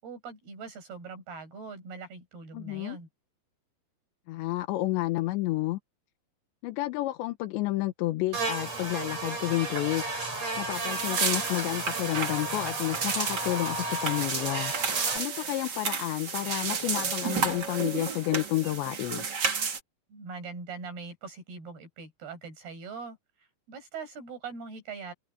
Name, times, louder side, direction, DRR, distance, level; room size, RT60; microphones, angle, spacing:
voice 1, 0.0-3.1 20.1-25.1, right 5 dB, 60° right, 9.3 m, -42 dB
voice 2, 2.5-3.0 4.3-5.8 6.6-10.0 10.6-14.7 15.1-19.3, left 17 dB, 90° left, 3.3 m, -30 dB
Buzz, 8.3-15.2, right 2 dB, 35° right, 8.5 m, -34 dB
sound 1, 10.7-19.8, right 5 dB, 80° right, 0.9 m, -32 dB
omnidirectional pair, 5.1 m